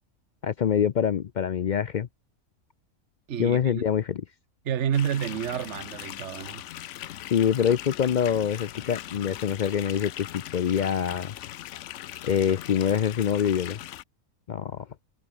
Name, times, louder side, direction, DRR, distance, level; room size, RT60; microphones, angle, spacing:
voice 1, 0.4-2.1 3.4-4.2 7.3-11.3 12.2-13.8 14.5-14.9, left 8 dB, 85° left, 0.4 m, -25 dB
voice 2, 3.3-3.8 4.6-6.6, right 9 dB, 55° right, 1.2 m, -29 dB
sound 1, 4.9-14.0, left 13 dB, 65° left, 0.8 m, -40 dB
omnidirectional pair, 1.6 m